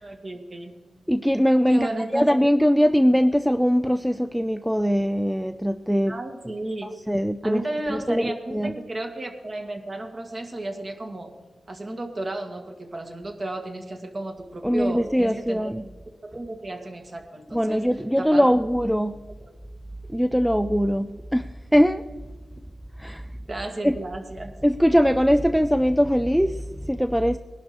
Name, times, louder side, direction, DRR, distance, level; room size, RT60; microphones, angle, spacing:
voice 1, 0.0-0.8 1.7-2.4 6.1-6.9 7.4-11.3 11.7-15.7 16.2-17.8 18.2-18.4 23.5-24.5, right 2 dB, 35° right, 3 dB, 2.1 m, -33 dB
voice 2, 1.1-6.1 7.1-7.6 7.9-8.3 8.5-8.7 14.6-15.8 17.5-19.2 20.1-21.5 21.7-22.0 23.0-23.2 23.8-24.0 24.6-27.4, equal, ahead, 10 dB, 0.4 m, -21 dB
20.0 x 11.5 x 4.5 m, 1.3 s
wide cardioid pair, 105°, 0 cm